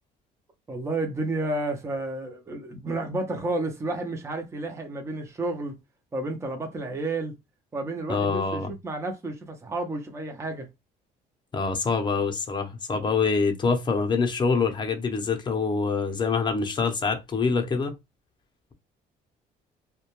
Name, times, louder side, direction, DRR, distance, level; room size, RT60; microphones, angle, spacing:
voice 1, 0.7-5.8 6.1-7.3 7.7-10.7, right 2 dB, 15° right, 0.5 m, -31 dB
voice 2, 8.1-8.7 11.5-17.9, left 4 dB, 25° left, 0.6 m, -25 dB
2.2 x 2.2 x 2.9 m
cardioid pair, 110°, 17 cm